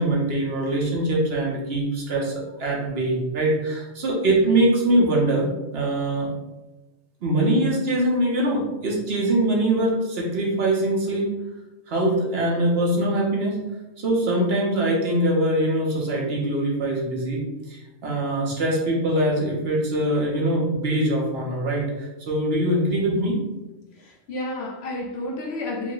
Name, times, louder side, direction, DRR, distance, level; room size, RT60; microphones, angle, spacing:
voice 1, 0.0-6.3 7.2-11.3 11.9-13.6 14.0-17.4 17.7-23.4, right 1 dB, 55° right, -3 dB, 1.0 m, -23 dB
voice 2, 24.0-25.9, left 1 dB, 65° left, 0 dB, 0.8 m, -31 dB
3.8 x 2.1 x 3.8 m, 1.0 s
omnidirectional pair, 1.3 m